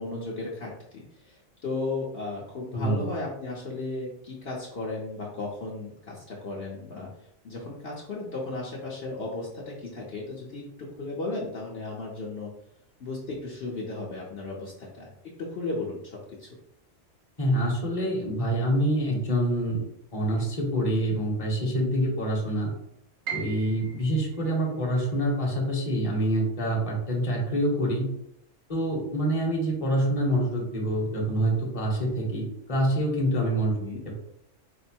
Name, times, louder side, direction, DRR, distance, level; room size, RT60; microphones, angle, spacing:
voice 1, 0.0-12.5 13.0-15.1 15.4-16.5 33.8-34.0, left 2 dB, 55° left, -4 dB, 1.0 m, -35 dB
voice 2, 2.7-3.0 17.4-19.8 20.1-22.7 23.3-28.1 28.7-33.7, right 1 dB, 30° left, -2 dB, 1.0 m, -26 dB
Piano, 23.3-29.2 29.5-30.7 31.1-31.2 31.9-32.2, right 8 dB, 85° right, 1.2 m, -43 dB
4.6 x 2.1 x 4.4 m, 0.77 s
omnidirectional pair, 1.3 m